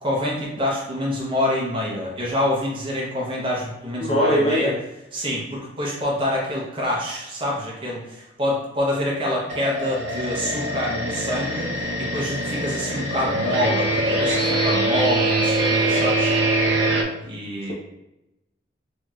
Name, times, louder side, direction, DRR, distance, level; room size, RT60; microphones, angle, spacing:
voice 1, 0.0-4.7 5.1-16.3 17.2-17.7, left 1 dB, 30° right, -4 dB, 0.7 m, -26 dB
voice 2, 4.0-4.8, equal, 35° left, -2 dB, 0.5 m, -20 dB
sound 1, 9.5-17.0, right 1 dB, 75° right, 0.5 m, -23 dB
3.0 x 2.7 x 2.3 m, 0.91 s
head